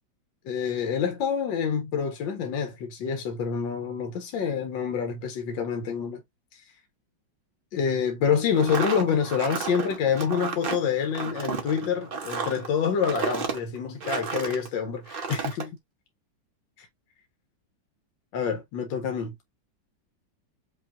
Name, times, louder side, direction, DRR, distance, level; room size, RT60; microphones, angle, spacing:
voice 1, 0.4-6.2 6.5-6.6 7.7-15.8 18.3-19.4, left 7 dB, 75° left, 1.5 m, -27 dB
sound 1, 8.5-14.7 15.1-15.7, right 5 dB, 45° right, 0.8 m, -32 dB
5.2 x 2.9 x 2.4 m
omnidirectional pair, 2.1 m